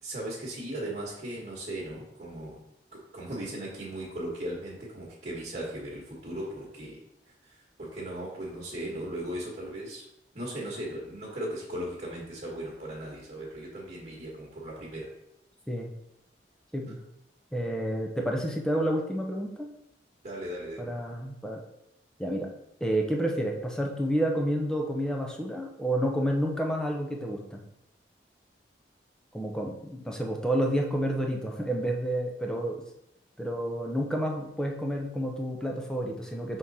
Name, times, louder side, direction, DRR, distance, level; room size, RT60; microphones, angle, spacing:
voice 1, 0.0-2.6 2.9-10.1 10.3-15.1 20.2-21.0, right 1 dB, 45° right, -6 dB, 1.5 m, -37 dB
voice 2, 16.7-17.0 17.5-19.7 20.8-21.6 22.2-22.5 22.8-27.6 29.3-32.8 33.4-36.6, right 1 dB, 5° left, 0 dB, 0.7 m, -30 dB
6.2 x 3.8 x 4.1 m, 0.84 s
head